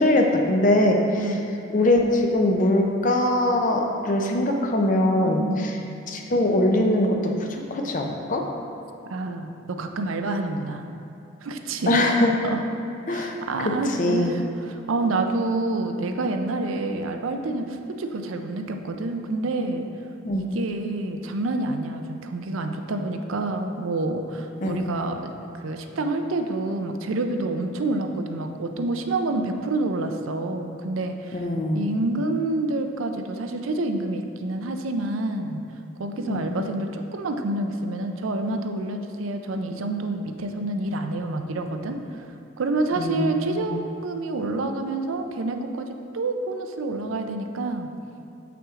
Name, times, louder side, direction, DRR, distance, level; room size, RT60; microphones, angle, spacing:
voice 1, 0.0-1.4 1.7-5.7 6.1-8.4 11.9-12.3 13.1-14.3 20.2-20.5 24.6-24.9 31.3-32.0 36.3-36.4 43.0-43.8, left 1 dB, 40° left, 2 dB, 0.6 m, -22 dB
voice 2, 1.1-1.5 5.2-5.7 9.1-10.9 11.4-12.0 12.4-12.6 13.1-19.9 20.3-31.4 31.7-35.6 36.0-42.2 42.6-45.9 46.1-47.9, right 2 dB, 85° right, 5 dB, 0.5 m, -28 dB
7.1 x 5.9 x 3.7 m, 2.7 s
head